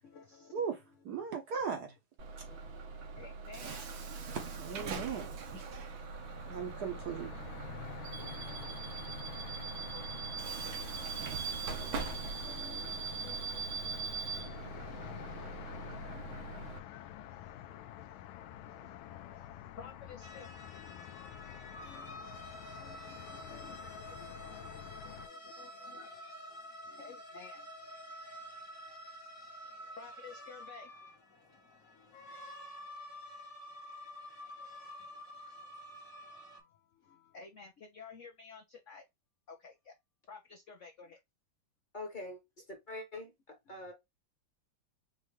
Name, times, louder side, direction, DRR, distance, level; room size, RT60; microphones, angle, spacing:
voice 1, 0.0-0.7 2.5-4.1 5.9-6.9 7.9-20.5 21.8-22.2 22.8-27.7 28.2-28.3 29.6-31.0 35.0-35.2 35.7-39.0 39.5-39.9 40.3-41.2 43.8-43.9, left 5 dB, 65° left, 0.7 m, -56 dB
voice 2, 1.0-1.9 2.4-2.5 3.6-3.7 4.3-5.7 6.4-7.3, right 6 dB, 60° right, 1.2 m, -38 dB
Bus / Alarm, 2.2-16.8, right 5 dB, 80° right, 1.8 m, -41 dB
sound 1, 6.0-25.3, left 12 dB, 85° left, 1.4 m, -48 dB
sound 2, 20.2-36.6, equal, 45° left, 1.4 m, -49 dB
voice 3, 41.9-43.9, left 2 dB, 30° left, 1.2 m, -44 dB
5.5 x 2.6 x 3.1 m
omnidirectional pair, 2.2 m